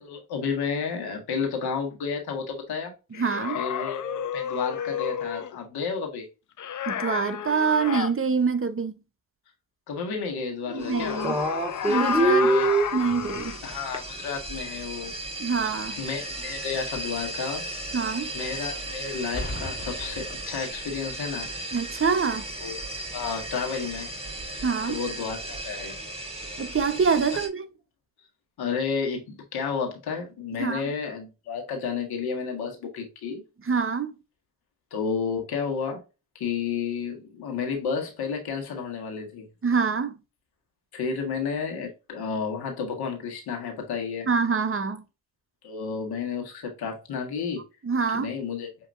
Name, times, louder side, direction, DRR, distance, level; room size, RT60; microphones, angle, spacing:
voice 1, 0.0-2.9 3.6-6.3 9.9-11.3 11.9-12.7 13.6-15.1 16.0-17.6 18.3-21.5 22.6-22.8 23.1-24.1 24.9-26.0 28.6-33.4 34.9-36.0 36.4-39.5 40.9-44.3 45.6-47.7 48.1-48.7, left 5 dB, 80° left, 1.6 m, -31 dB
sound 1, 3.1-5.6 6.6-8.1 10.7-13.6, left 8 dB, 55° left, 0.7 m, -30 dB
voice 2, 3.2-3.6 6.9-9.0 10.7-11.4 11.9-12.5 12.9-13.6 15.4-16.0 17.9-18.3 21.7-22.5 24.6-25.0 26.6-27.7 30.6-30.8 33.6-34.1 39.6-40.2 44.3-45.0 47.8-48.3, right 5 dB, 35° right, 0.9 m, -25 dB
sound 2, 10.8-27.5, right 2 dB, 15° right, 1.7 m, -31 dB
Boom, 19.3-21.1 22.0-22.2, left 1 dB, 30° left, 1.7 m, -37 dB
6.7 x 2.9 x 2.5 m
supercardioid pair, 40°, 37 cm